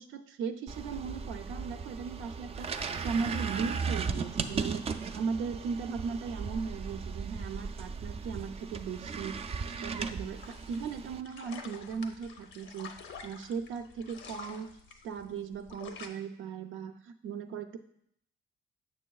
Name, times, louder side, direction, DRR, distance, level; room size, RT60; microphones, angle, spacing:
voice 1, 0.0-4.9 5.1-9.4 9.8-12.9 13.2-14.7 15.0-17.8, right 5 dB, 85° right, 7 dB, 0.5 m, -37 dB
sound 1, 0.7-11.2, right 5 dB, 30° right, 0.4 m, -37 dB
sound 2, 10.4-16.1, left 5 dB, 75° left, 0.7 m, -48 dB
6.5 x 6.2 x 2.3 m, 0.71 s
cardioid pair, 90°, 20 cm